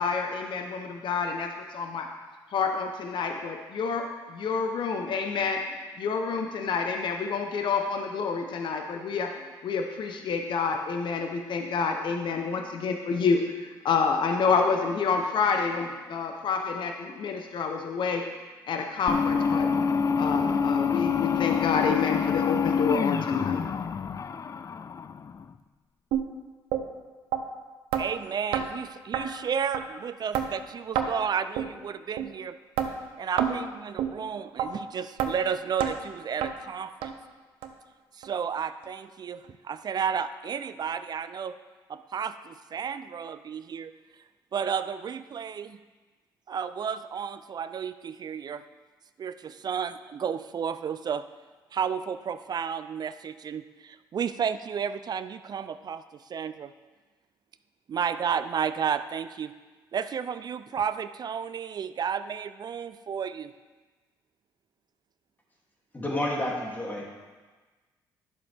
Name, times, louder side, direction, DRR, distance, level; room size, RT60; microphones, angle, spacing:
voice 1, 0.0-2.1 2.5-4.0 4.3-5.6 6.0-9.3 9.6-18.2 18.7-19.7 20.2-23.6, left 5 dB, 60° left, 4 dB, 0.8 m, -28 dB
sound 1, 19.1-25.4, left 6 dB, 35° left, 0.4 m, -27 dB
sound 2, 26.1-26.2 26.7-26.8 27.3-27.4 27.9-28.0 28.5-28.7 29.1-29.2 29.7-29.8 30.3-30.5 30.9-31.1 31.6-31.7 32.2-32.3 32.8-32.9 33.4-33.5 34.0-34.1 34.6-34.7 35.2-35.3 35.8-35.9 36.4-36.5 37.0-37.1 37.6-37.7 38.2-38.3 38.8-38.9, right 9 dB, 85° right, 0.7 m, -27 dB
voice 2, 28.0-32.6 33.2-37.2 38.1-41.6 41.9-43.9 44.5-45.8 46.5-48.6 49.2-51.2 51.7-56.7 57.9-59.5 59.9-63.5, right 7 dB, 45° right, 12 dB, 0.4 m, -32 dB
voice 3, 65.9-67.1, left 1 dB, 20° left, -3 dB, 2.6 m, -30 dB
11.0 x 6.9 x 3.4 m, 1.3 s
supercardioid pair, 65°, 9 cm